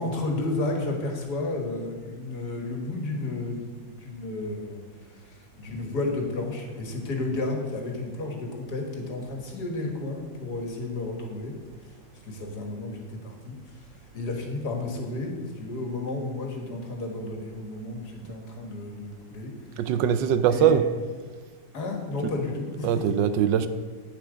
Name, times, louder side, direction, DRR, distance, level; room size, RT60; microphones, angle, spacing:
voice 1, 0.0-4.8 5.1-11.5 12.2-13.9 14.1-19.5 19.8-19.9 20.5-20.7 21.7-23.1, left 2 dB, 60° left, 2 dB, 2.0 m, -32 dB
voice 2, 19.8-20.8 22.8-23.7, right 9 dB, 80° right, 12 dB, 1.3 m, -21 dB
10.0 x 8.5 x 5.0 m, 1.5 s
omnidirectional pair, 2.0 m